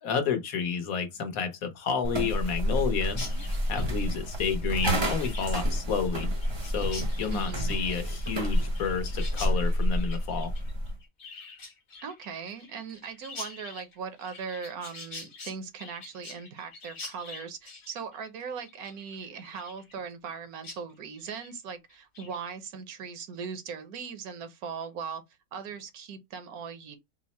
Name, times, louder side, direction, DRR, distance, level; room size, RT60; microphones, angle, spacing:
voice 1, 0.0-3.2 3.7-6.3 6.6-10.5, left 6 dB, 75° left, 1.3 m, -30 dB
sound 1, 2.0-11.0, equal, 30° right, 0.5 m, -29 dB
Chirp tweet, 3.1-20.3 20.6-20.8 21.1-21.5 21.9-22.4, left 3 dB, 50° left, 1.3 m, -46 dB
voice 2, 7.3-7.8 12.0-25.2 25.5-27.0, right 6 dB, 80° right, 1.3 m, -39 dB
4.5 x 2.1 x 4.1 m
omnidirectional pair, 1.5 m